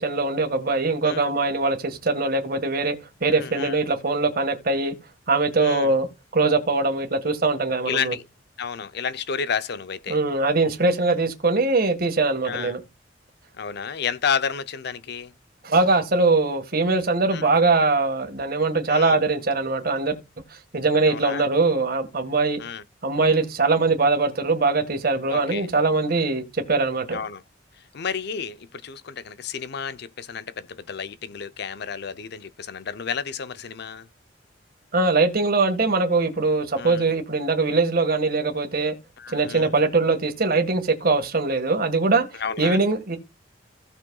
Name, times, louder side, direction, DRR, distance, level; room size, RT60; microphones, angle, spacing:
voice 1, 0.0-2.9 3.2-4.9 5.3-6.1 6.3-8.1 10.1-12.8 15.6-20.1 20.5-22.6 23.0-27.2 34.9-38.9 39.3-42.2 42.6-43.2, right 3 dB, 55° right, 1.6 m, -22 dB
voice 2, 3.4-3.8 5.6-5.9 7.8-8.3 8.6-10.2 12.4-12.8 13.6-15.3 17.3-17.5 18.9-19.2 21.1-21.5 22.6-22.8 25.3-25.7 27.1-27.4 27.9-34.1 36.8-37.0 39.2-39.7 42.4-42.8, left 6 dB, 60° left, 0.6 m, -31 dB
16.5 x 6.2 x 2.3 m
head